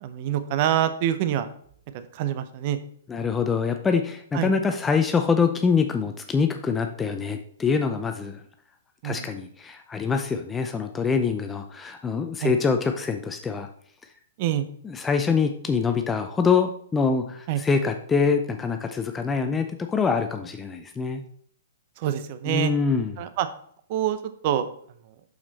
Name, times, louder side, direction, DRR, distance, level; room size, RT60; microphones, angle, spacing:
voice 1, 0.0-1.5 2.1-2.8 4.3-4.5 9.0-9.3 12.4-12.5 14.4-14.7 17.5-17.6 22.0-22.7 23.2-23.5 23.9-24.2 24.4-24.7, right 11 dB, 45° right, 11 dB, 0.7 m, -25 dB
voice 2, 3.1-8.4 9.0-13.7 14.8-21.2 22.5-23.2, left 5 dB, 15° left, 6 dB, 0.6 m, -25 dB
6.6 x 5.9 x 4.1 m, 0.62 s
hypercardioid pair, 115°, 0 cm